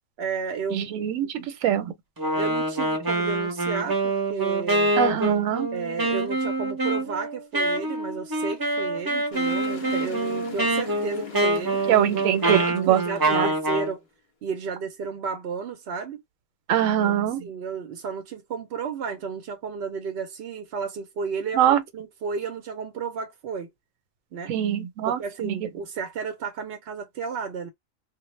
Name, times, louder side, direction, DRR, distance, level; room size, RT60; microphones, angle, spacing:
voice 1, 0.2-1.1 2.3-4.9 5.7-11.8 12.3-14.0 14.4-16.2 17.0-17.1 17.4-23.7 24.3-24.5 25.1-27.7, right 5 dB, 65° right, 0.7 m, -33 dB
voice 2, 0.7-1.9 5.0-5.7 11.9-13.0 13.3-13.5 16.7-17.5 21.5-21.8 24.5-25.6, right 10 dB, 85° right, 1.0 m, -23 dB
Wind instrument woodwind instrument, 2.2-13.9, right 2 dB, 25° right, 0.6 m, -26 dB
sound 1, 9.3-13.7, left 6 dB, 45° left, 0.7 m, -41 dB
2.1 x 2.1 x 3.0 m
omnidirectional pair, 1.4 m